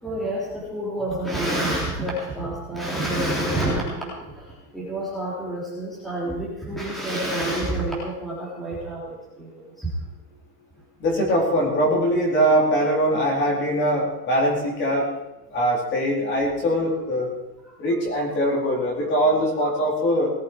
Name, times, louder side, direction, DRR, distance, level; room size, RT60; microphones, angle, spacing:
voice 1, 0.0-9.9 17.7-17.8 19.0-19.1 19.6-19.8, right 1 dB, ahead, -6 dB, 3.6 m, -28 dB
voice 2, 11.0-15.1 15.5-17.3 17.8-20.3, equal, 25° left, -1 dB, 4.2 m, -22 dB
19.0 x 14.0 x 4.8 m, 0.96 s
supercardioid pair, 160°, 47 cm